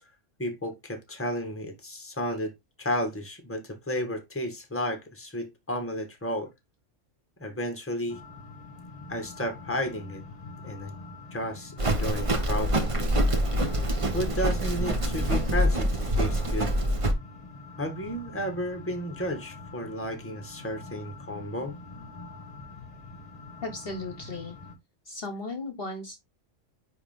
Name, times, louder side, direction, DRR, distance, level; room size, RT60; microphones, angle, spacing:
voice 1, 0.4-2.5 2.8-6.5 7.4-8.2 9.1-10.2 10.6-10.9 11.3-12.9 14.1-16.7 17.8-21.7, equal, 10° left, 1.4 m, -32 dB
sound 1, 8.1-24.7, left 3 dB, 30° left, 1.6 m, -45 dB
Livestock farm animals working animals, 11.8-17.1, right 1 dB, 30° right, 0.8 m, -25 dB
voice 2, 21.4-22.1 22.6-22.7 23.6-24.5 25.1-26.2, left 2 dB, 50° left, 1.2 m, -37 dB
9.5 x 3.2 x 3.5 m
omnidirectional pair, 1.3 m